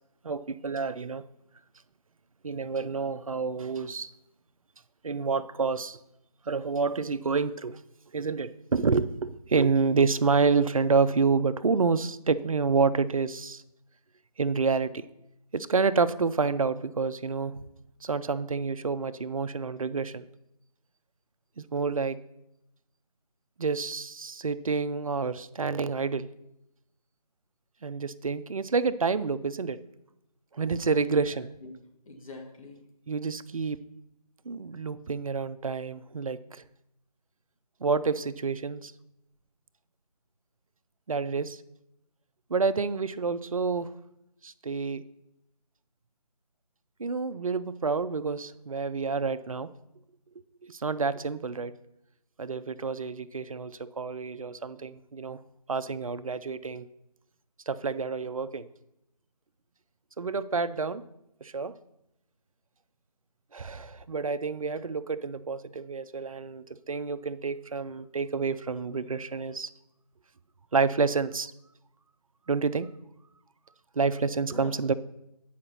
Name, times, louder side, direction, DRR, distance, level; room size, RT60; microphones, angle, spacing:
voice 1, 0.2-1.2 2.4-4.1 5.0-6.0 6.5-7.8 8.1-13.6 14.4-14.9 15.5-17.5 18.0-20.2 21.6-22.2 23.6-26.3 27.8-29.8 30.5-31.5 33.1-33.8 34.5-36.6 37.8-38.9 41.1-41.6 42.5-43.9 44.4-45.0 47.0-49.7 50.6-51.7 52.4-55.4 55.7-56.9 57.7-58.7 60.2-61.0 61.4-61.7 63.5-69.7 70.7-71.5 72.5-72.9 74.0-74.9, right 4 dB, 55° right, 13 dB, 0.5 m, -28 dB
voice 2, 31.0-32.8 74.4-74.8, left 2 dB, 55° left, 1 dB, 1.6 m, -45 dB
8.5 x 5.0 x 5.7 m, 0.84 s
figure-of-eight pair, 160°, 20 cm